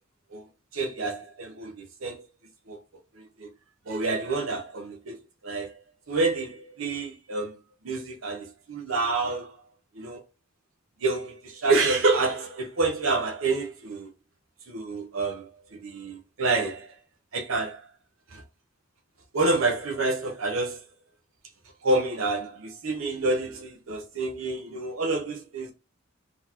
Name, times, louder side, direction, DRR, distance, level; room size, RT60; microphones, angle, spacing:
voice 1, 0.7-2.3 2.7-2.8 3.2-3.5 3.9-5.2 5.4-5.8 6.1-7.6 7.8-9.5 9.9-10.2 11.0-14.1 14.7-17.0 17.3-17.9 18.3-18.4 19.3-20.8 21.8-25.7, right 3 dB, 75° right, 0.8 m, -28 dB
4.0 x 3.0 x 2.7 m
head